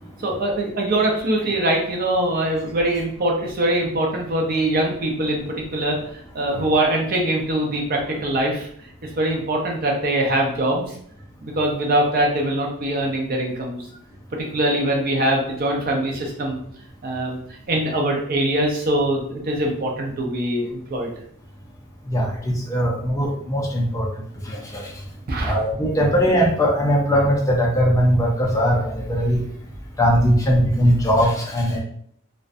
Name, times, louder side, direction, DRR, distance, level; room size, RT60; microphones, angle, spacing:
voice 1, 0.2-6.0 6.3-8.7 9.2-10.9 11.4-13.8 14.5-16.6 17.0-17.4 17.7-21.1 25.3-25.5, right 1 dB, 45° right, 0 dB, 0.5 m, -22 dB
voice 2, 22.1-24.1 24.5-24.9 25.4-29.4 30.0-31.8, equal, 15° left, -2 dB, 0.4 m, -20 dB
2.5 x 2.1 x 2.5 m, 0.65 s
head